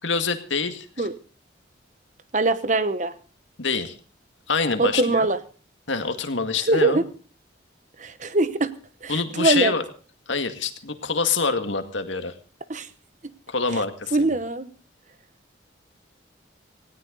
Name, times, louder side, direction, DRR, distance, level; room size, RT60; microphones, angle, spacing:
voice 1, 0.0-1.1 3.6-4.0 4.5-5.3 5.9-7.0 9.1-9.8 10.3-12.3 13.5-14.3, left 4 dB, 80° left, 8 dB, 2.0 m, -26 dB
voice 2, 2.3-3.1 4.8-5.4 6.7-7.1 8.0-8.7 9.0-9.7 12.7-12.9 14.1-14.7, right 2 dB, 40° right, 13 dB, 1.0 m, -22 dB
18.5 x 17.0 x 4.0 m, 0.37 s
head